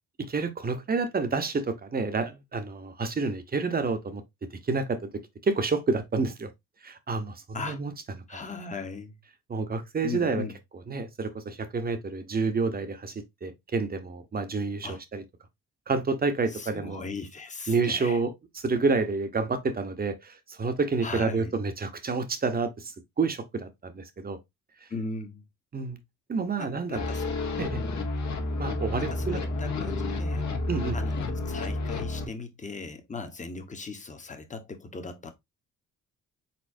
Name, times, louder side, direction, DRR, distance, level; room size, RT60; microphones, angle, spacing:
voice 1, 0.2-4.2 4.6-5.1 5.4-6.5 6.8-7.9 8.3-8.4 9.5-10.4 10.9-15.2 15.9-17.0 17.7-24.4 25.7-26.0 26.3-27.1 27.6-27.8 28.6-29.4 30.7-31.0, right 4 dB, 30° right, 0.9 m, -29 dB
voice 2, 8.3-9.2 10.0-10.6 14.8-15.0 16.5-18.2 21.0-21.5 24.9-25.4 26.6-27.6 29.0-30.5 30.9-35.3, left 3 dB, 25° left, 1.1 m, -38 dB
sound 1, 26.9-32.3, left 2 dB, 65° left, 1.4 m, -30 dB
4.3 x 4.1 x 2.6 m
cardioid pair, 90°, 30 cm